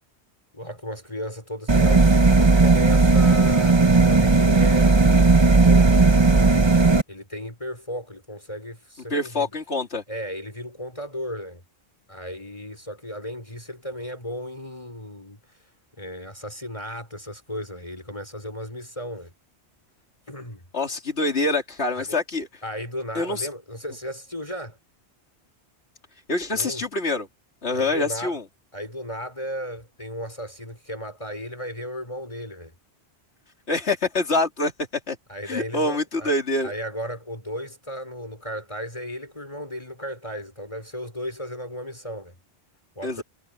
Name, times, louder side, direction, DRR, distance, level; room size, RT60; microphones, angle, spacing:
voice 1, 0.5-6.2 7.1-9.5 10.1-11.6 12.1-15.4 16.0-19.3 20.3-20.6 22.0-22.2 22.6-24.8 26.5-26.8 27.7-28.4 28.7-32.7 35.3-36.3 36.6-42.3 43.0-43.2, equal, 30° left, 5.6 m, -35 dB
sound 1, 1.7-7.0, right 3 dB, 25° right, 0.9 m, -16 dB
voice 2, 9.1-10.0 20.7-22.5 23.1-23.5 26.3-27.3 27.6-28.4 33.7-34.7 35.1-35.2 35.4-36.7 43.0-43.2, left 2 dB, 75° left, 3.1 m, -25 dB
omnidirectional pair, 1.1 m